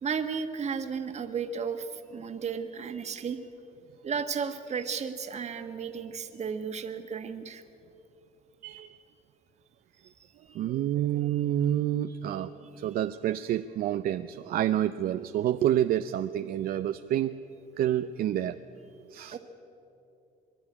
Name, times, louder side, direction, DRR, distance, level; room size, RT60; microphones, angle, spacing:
voice 1, 0.0-3.4 4.0-7.6 10.0-10.1 10.5-10.6 19.3-19.4, right 6 dB, 40° right, 7 dB, 1.6 m, -34 dB
voice 2, 8.6-9.0 10.5-17.4 17.8-18.6 19.1-19.4, right 11 dB, 60° right, 9 dB, 0.6 m, -28 dB
24.0 x 12.0 x 10.0 m, 2.9 s
cardioid pair, 110°, 17 cm